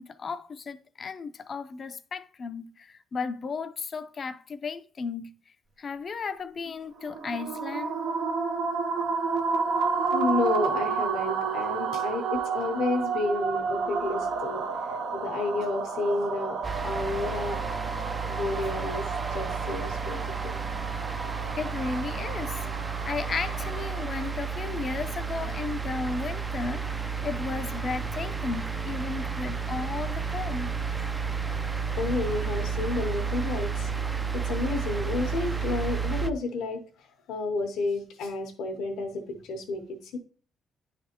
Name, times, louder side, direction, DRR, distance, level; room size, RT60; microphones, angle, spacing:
voice 1, 0.0-5.3 5.8-8.0 21.6-22.6 23.0-30.7 31.0-31.3 31.7-31.8 34.6-34.8, left 4 dB, 45° left, 0.4 m, -34 dB
sound 1, 7.0-24.3, right 5 dB, 75° right, 0.7 m, -31 dB
voice 2, 10.1-14.6 15.1-16.6 16.8-17.6 18.3-19.0 19.3-20.6 32.0-33.9 34.3-36.8 37.3-40.2, left 3 dB, 85° left, 0.8 m, -31 dB
sound 2, 16.6-36.3, right 5 dB, 20° right, 0.3 m, -32 dB
9.9 x 3.3 x 2.8 m
cardioid pair, 90°, 0 cm